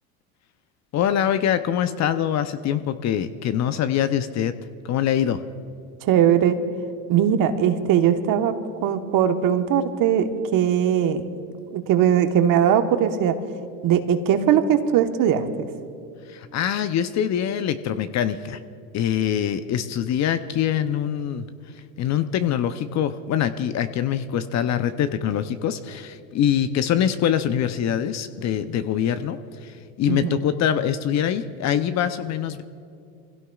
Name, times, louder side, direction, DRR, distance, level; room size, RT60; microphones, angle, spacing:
voice 1, 0.9-4.5 4.8-5.4 16.3-18.6 18.9-21.5 22.0-32.6, left 9 dB, 40° left, 11 dB, 0.7 m, -24 dB
voice 2, 6.0-6.6 7.1-8.5 8.8-11.3 11.7-13.4 13.8-15.7 30.1-30.4, right 9 dB, 50° right, 7 dB, 1.3 m, -20 dB
25.5 x 16.5 x 2.4 m, 2.4 s
hypercardioid pair, 95°, 44 cm